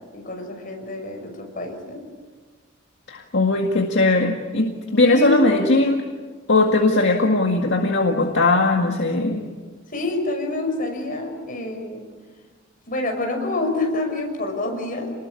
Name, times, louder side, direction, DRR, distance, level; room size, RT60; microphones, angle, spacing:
voice 1, 0.1-2.0 5.0-5.6 9.9-12.0 12.9-15.1, left 2 dB, 45° left, 3 dB, 6.2 m, -27 dB
voice 2, 3.1-6.0 6.5-9.4, left 2 dB, 65° left, 2 dB, 2.0 m, -19 dB
28.5 x 20.5 x 8.5 m, 1.4 s
head